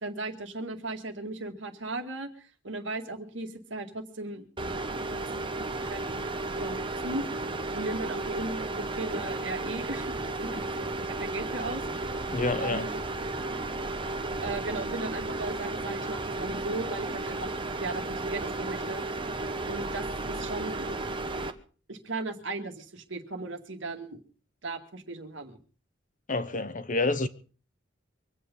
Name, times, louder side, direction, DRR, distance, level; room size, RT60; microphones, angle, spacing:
voice 1, 0.0-4.5 5.9-6.0 6.6-7.5 7.7-11.8 12.6-13.0 14.4-17.5 17.8-19.0 19.6-21.0 21.9-24.2 24.6-25.6, right 2 dB, 70° right, 2.1 m, -36 dB
sound 1, 4.6-21.5, right 2 dB, 25° right, 1.1 m, -33 dB
voice 2, 12.3-12.9 26.3-27.3, left 3 dB, 40° left, 1.0 m, -28 dB
24.0 x 8.5 x 5.4 m
head